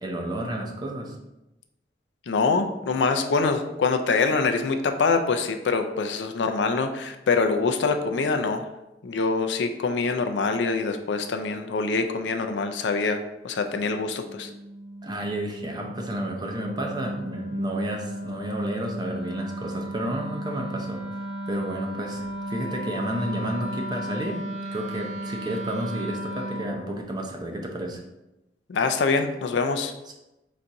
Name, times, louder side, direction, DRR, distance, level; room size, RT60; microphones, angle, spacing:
voice 1, 0.0-1.2 15.0-21.0 21.4-28.0, right 1 dB, 25° right, 1 dB, 0.6 m, -31 dB
voice 2, 2.3-8.6 9.0-14.5 28.7-29.9, left 4 dB, 85° left, 7 dB, 0.4 m, -24 dB
Wind instrument woodwind instrument, 13.8-26.8, right 1 dB, 50° right, 0.9 m, -35 dB
4.0 x 2.6 x 4.5 m, 0.94 s
head